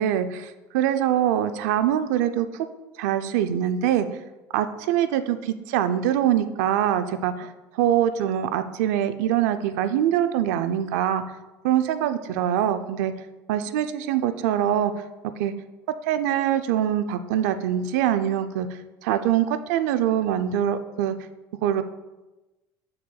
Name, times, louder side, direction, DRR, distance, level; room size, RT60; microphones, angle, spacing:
voice 1, 0.0-2.7 3.0-4.1 4.5-11.2 11.6-13.1 13.5-15.0 15.4-15.5 16.1-18.7 19.0-21.2 21.6-21.8, right 10 dB, 85° right, 10 dB, 0.5 m, -24 dB
8.5 x 6.5 x 2.3 m, 1.1 s
cardioid pair, 145°, 9 cm